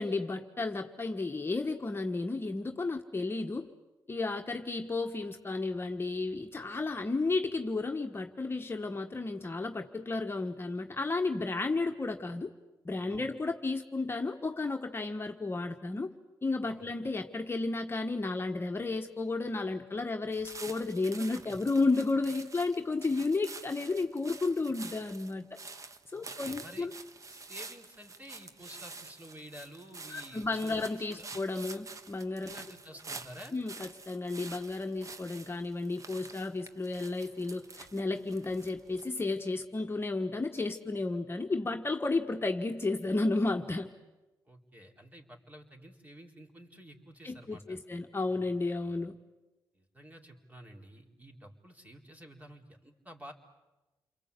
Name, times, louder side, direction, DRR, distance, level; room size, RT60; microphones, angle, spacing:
voice 1, 0.0-3.7 4.1-12.5 12.8-16.1 16.4-25.5 26.1-26.9 30.1-32.5 33.5-43.9 47.2-49.2, left 3 dB, 30° left, 3 dB, 1.5 m, -33 dB
sound 1, 20.3-39.0, right 3 dB, 45° right, 1.4 m, -48 dB
voice 2, 26.1-26.9 27.3-30.8 31.1-31.3 32.4-33.5 44.5-47.8 49.7-53.3, equal, 20° right, 1 dB, 4.3 m, -51 dB
29.5 x 22.5 x 8.4 m, 1.1 s
cardioid pair, 70°, 8 cm